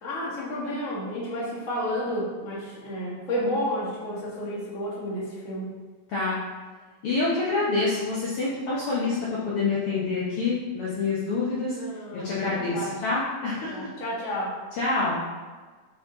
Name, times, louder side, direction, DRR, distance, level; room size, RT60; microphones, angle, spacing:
voice 1, 0.0-5.7 11.7-12.9 13.7-14.5, equal, 35° left, -7 dB, 1.5 m, -31 dB
voice 2, 6.1-6.4 7.0-11.8 12.1-13.9 14.8-15.2, left 3 dB, 60° left, -8 dB, 1.7 m, -27 dB
6.7 x 4.2 x 3.9 m, 1.4 s
omnidirectional pair, 3.5 m